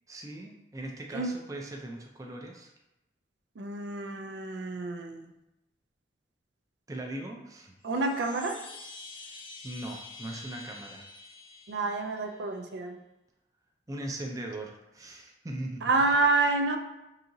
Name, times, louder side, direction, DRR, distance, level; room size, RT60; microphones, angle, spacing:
voice 1, 0.1-2.7 6.9-7.7 9.6-11.0 13.9-15.8, right 1 dB, 20° right, 1 dB, 0.4 m, -39 dB
voice 2, 3.6-5.3 7.8-8.6 11.7-13.0 15.8-16.8, right 3 dB, 80° right, 5 dB, 0.4 m, -28 dB
Chime, 7.8-12.5, left 3 dB, 35° left, 0.7 m, -47 dB
4.8 x 2.8 x 2.7 m, 0.94 s
head